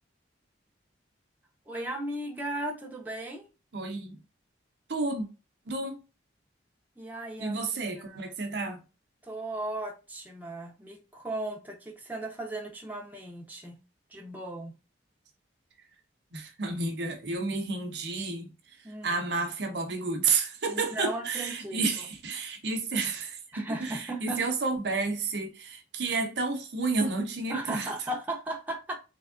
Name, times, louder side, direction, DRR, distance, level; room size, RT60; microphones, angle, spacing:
voice 1, 1.7-3.4 7.0-7.6 8.0-8.2 9.2-13.8 14.1-14.7 18.8-19.2 20.7-21.8 23.5-24.4 27.5-28.9, right 1 dB, 10° right, 0.7 m, -36 dB
voice 2, 3.7-4.2 4.9-5.3 5.7-6.0 7.4-8.8 16.3-18.5 19.0-27.9, right 3 dB, 60° right, 0.7 m, -31 dB
3.4 x 3.3 x 2.4 m
head